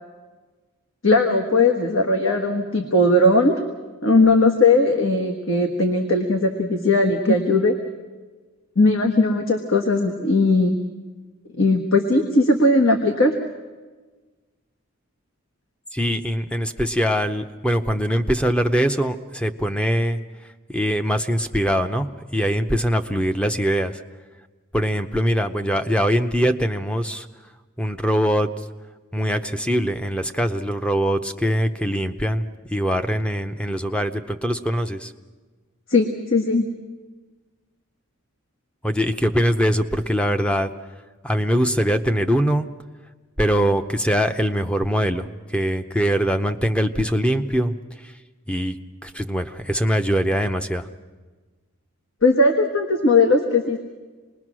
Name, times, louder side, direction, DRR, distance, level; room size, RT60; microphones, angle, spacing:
voice 1, 1.0-3.6 4.0-7.7 8.8-10.8 11.6-13.3 35.9-36.7 52.2-53.8, left 2 dB, 60° left, 3 dB, 1.4 m, -18 dB
voice 2, 15.9-20.2 20.7-22.1 22.3-24.0 24.7-27.3 27.8-28.5 29.1-35.1 38.8-40.7 41.2-42.7 43.4-47.8 48.0-48.1 48.5-48.8 49.0-50.9, equal, 5° left, 8 dB, 0.7 m, -22 dB
27.0 x 20.5 x 6.2 m, 1.3 s
head